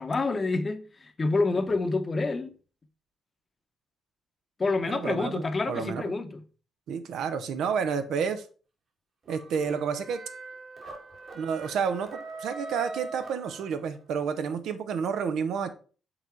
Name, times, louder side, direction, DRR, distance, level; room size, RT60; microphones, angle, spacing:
voice 1, 0.0-2.5 4.6-6.4, left 3 dB, 30° left, 0.8 m, -28 dB
voice 2, 4.9-6.0 6.9-8.4 9.3-10.2 11.3-15.7, right 6 dB, 75° right, 0.8 m, -30 dB
sound 1, 9.3-14.1, right 3 dB, 45° right, 2.0 m, -42 dB
5.9 x 4.0 x 4.5 m
cardioid pair, 90°, 0 cm